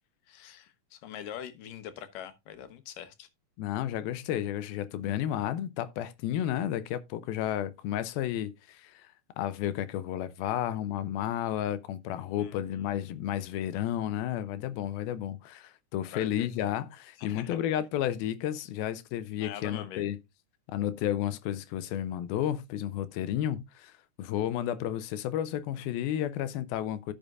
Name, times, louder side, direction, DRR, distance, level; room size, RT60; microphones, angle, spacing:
voice 1, 0.3-3.3 12.4-12.6 16.1-16.5 17.2-17.6 19.4-20.1, left 10 dB, 70° left, 2.6 m, -43 dB
voice 2, 3.6-9.1 9.4-20.2 20.7-23.9 24.2-27.1, left 11 dB, 90° left, 2.7 m, -32 dB
14.0 x 6.7 x 2.4 m
omnidirectional pair, 4.2 m